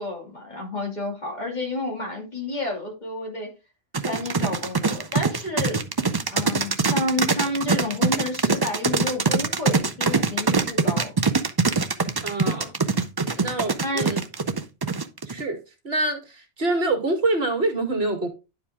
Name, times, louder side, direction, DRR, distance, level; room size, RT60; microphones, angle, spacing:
voice 1, 0.0-3.5 4.0-5.8 6.3-11.1 12.6-12.7 13.3-14.1, left 2 dB, 40° left, 2.6 m, -30 dB
sound 1, 3.9-15.4, right 4 dB, 30° right, 0.4 m, -23 dB
voice 2, 12.2-12.7 13.4-14.2 15.3-15.6 15.8-18.3, right 2 dB, 60° right, 2.0 m, -25 dB
10.0 x 4.9 x 3.5 m
omnidirectional pair, 1.2 m